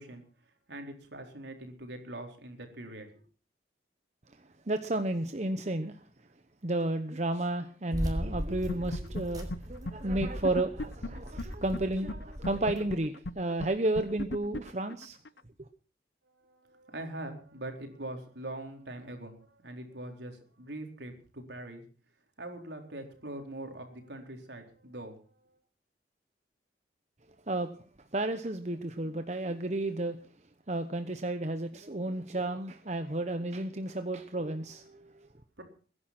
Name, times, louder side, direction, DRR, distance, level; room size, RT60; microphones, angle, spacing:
voice 1, 0.0-3.1 16.2-21.8 22.4-25.6 35.6-35.7, right 1 dB, 75° right, 4.2 m, -43 dB
voice 2, 4.4-6.0 6.6-15.2 27.5-27.7 28.1-30.2 30.7-35.3, right 2 dB, 40° right, 1.0 m, -32 dB
sound 1, 7.9-12.8, equal, 20° right, 4.0 m, -38 dB
sound 2, 8.7-9.2 9.5-9.6 9.9-10.0 10.2-11.8 12.1-12.2 12.4-15.4, left 2 dB, 70° left, 0.8 m, -35 dB
21.5 x 11.0 x 6.1 m
head